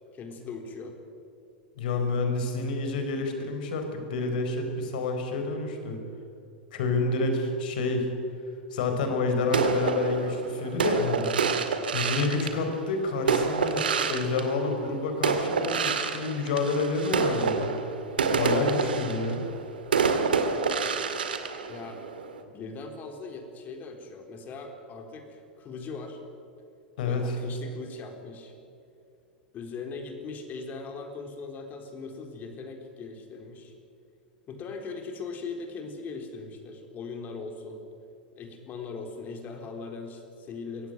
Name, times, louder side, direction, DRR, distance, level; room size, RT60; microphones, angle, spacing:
voice 1, 0.1-1.0 2.6-2.9 3.4-3.5 21.7-22.0 22.4-26.2 27.0-28.5 29.5-33.7 34.5-37.8 38.3-40.9, left 4 dB, 35° left, 4 dB, 4.1 m, -40 dB
voice 2, 1.8-6.0 6.7-8.1 8.7-11.3 11.9-13.8 14.1-17.7 18.3-19.4 27.0-27.3, left 3 dB, 65° left, 5 dB, 4.7 m, -28 dB
sound 1, 9.5-14.9 15.2-22.4, right 5 dB, 80° right, 2.1 m, -28 dB
22.5 x 16.5 x 9.3 m, 2.6 s
hypercardioid pair, 95°, 5 cm